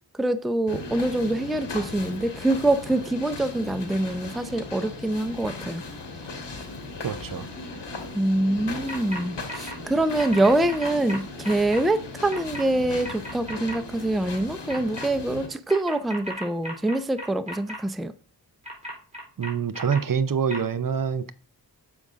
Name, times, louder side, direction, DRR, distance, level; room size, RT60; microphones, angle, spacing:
voice 1, 0.2-5.8 8.1-18.1, right 1 dB, ahead, 0.5 m, -25 dB
sound 1, 0.7-15.5, left 3 dB, 80° left, 1.9 m, -37 dB
voice 2, 7.0-7.5 19.4-21.3, right 7 dB, 50° right, 0.7 m, -26 dB
sound 2, 8.9-9.2 9.5-9.7 10.2-11.8 12.3-12.6 13.0-13.7 14.7-15.0 15.7-17.8 18.6-20.0 20.5-20.6, equal, 15° right, 3.5 m, -35 dB
7.0 x 5.2 x 3.6 m
wide cardioid pair, 65°, 42 cm